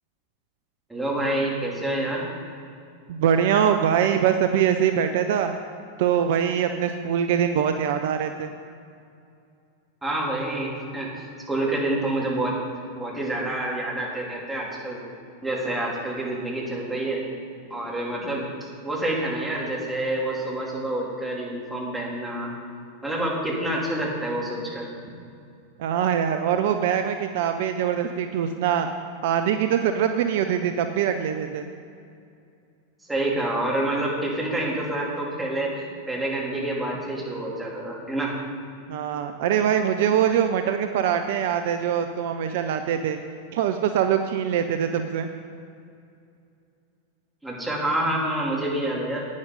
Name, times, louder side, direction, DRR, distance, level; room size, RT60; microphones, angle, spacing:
voice 1, 0.9-2.3 10.0-11.1 11.5-12.6 12.9-15.0 15.4-17.2 17.7-18.4 18.8-22.5 23.0-25.2 33.1-38.3 47.4-49.3, right 1 dB, 5° right, -4 dB, 2.9 m, -27 dB
voice 2, 3.1-5.5 6.0-8.5 25.8-28.9 29.2-31.7 38.9-43.2 43.5-45.3, right 8 dB, 50° right, 7 dB, 0.5 m, -23 dB
10.5 x 9.6 x 5.2 m, 2.5 s
figure-of-eight pair, 90°, 0 cm